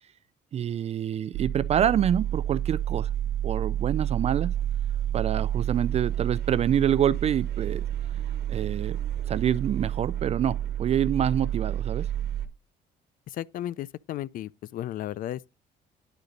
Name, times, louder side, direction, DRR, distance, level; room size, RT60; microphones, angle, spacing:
voice 1, 0.5-3.1 3.4-4.5 5.1-7.8 8.5-9.0 9.3-12.1, right 9 dB, 40° right, 0.4 m, -26 dB
sound 1, 1.3-12.5, right 11 dB, 70° right, 1.2 m, -29 dB
voice 2, 13.3-15.5, left 12 dB, 55° left, 0.4 m, -34 dB
10.0 x 3.9 x 5.1 m
cardioid pair, 110°, 17 cm